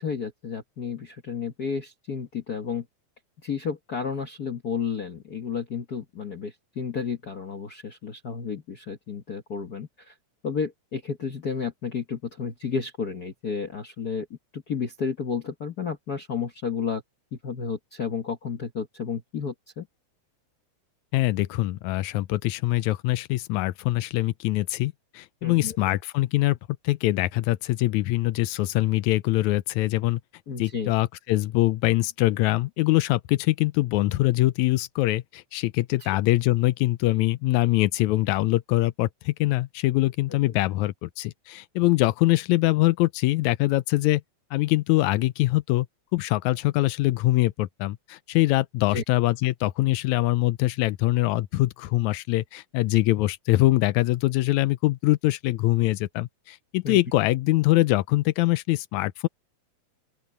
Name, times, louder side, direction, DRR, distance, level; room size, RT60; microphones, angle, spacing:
voice 1, 0.0-2.8 3.4-10.1 10.4-14.3 14.5-17.0 17.4-19.9 25.4-25.8 30.5-30.9 36.0-36.1 48.9-49.0 56.8-57.0, left 6 dB, 50° left, 1.2 m, -32 dB
voice 2, 21.1-26.6 26.8-30.2 30.6-44.2 44.5-45.9 46.1-59.3, left 17 dB, 85° left, 2.0 m, -23 dB
open air
omnidirectional pair, 3.4 m